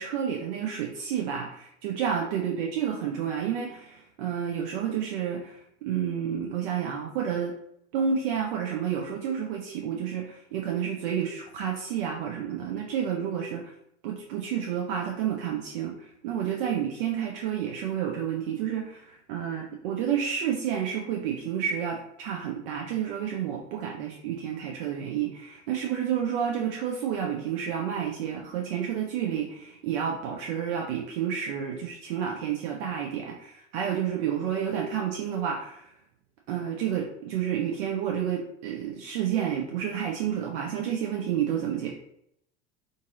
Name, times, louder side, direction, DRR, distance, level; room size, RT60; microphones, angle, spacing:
voice 1, 0.0-7.5 7.9-13.7 14.0-35.9 36.5-41.9, right 8 dB, 50° right, 0 dB, 0.6 m, -30 dB
2.6 x 2.6 x 3.8 m, 0.72 s
figure-of-eight pair, 75°, 36 cm